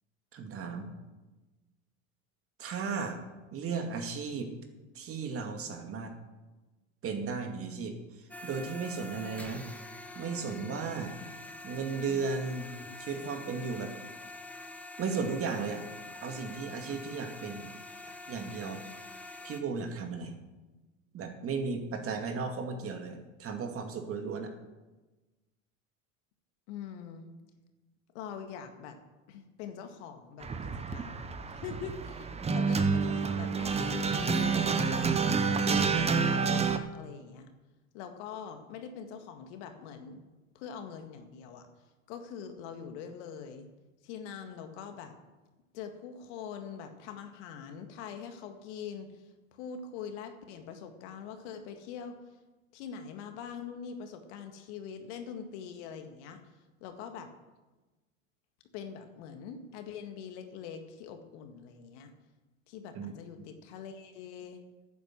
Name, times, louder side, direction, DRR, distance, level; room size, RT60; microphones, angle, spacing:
voice 1, 0.3-0.9 2.6-3.2 3.5-4.5 4.9-6.1 7.0-9.6 10.1-11.1 11.6-12.7 13.0-13.9 15.0-15.8 16.2-17.7 18.3-18.8 19.4-20.3 21.1-24.5 62.9-63.1, right 5 dB, 35° right, 5 dB, 2.3 m, -35 dB
sound 1, 8.3-19.6, left 2 dB, 5° left, 1.4 m, -45 dB
voice 2, 26.7-27.3 28.1-29.0 29.3-35.1 35.6-37.5 37.9-40.2 40.5-41.7 42.1-43.7 44.0-45.1 45.7-52.2 52.7-56.4 56.8-57.3 58.7-62.1 62.7-64.6, left 7 dB, 60° left, 6 dB, 1.9 m, -43 dB
sound 2, 30.4-36.8, right 5 dB, 15° right, 0.9 m, -28 dB
11.0 x 9.3 x 7.6 m, 1.2 s
hypercardioid pair, 95°, 40 cm